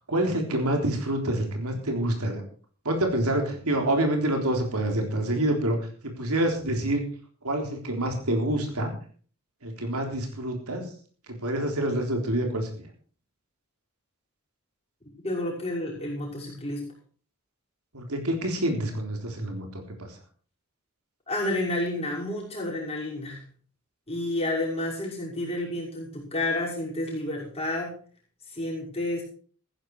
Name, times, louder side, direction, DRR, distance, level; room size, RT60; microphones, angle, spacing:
voice 1, 0.1-2.4 2.9-5.8 6.2-7.0 7.4-8.9 9.6-10.8 11.3-12.9 17.9-20.1, right 1 dB, 85° right, 3 dB, 3.7 m, -27 dB
voice 2, 15.2-16.9 21.3-23.4 24.1-28.0 28.5-29.2, left 1 dB, 25° left, -4 dB, 6.0 m, -30 dB
14.5 x 10.5 x 4.7 m, 0.43 s
head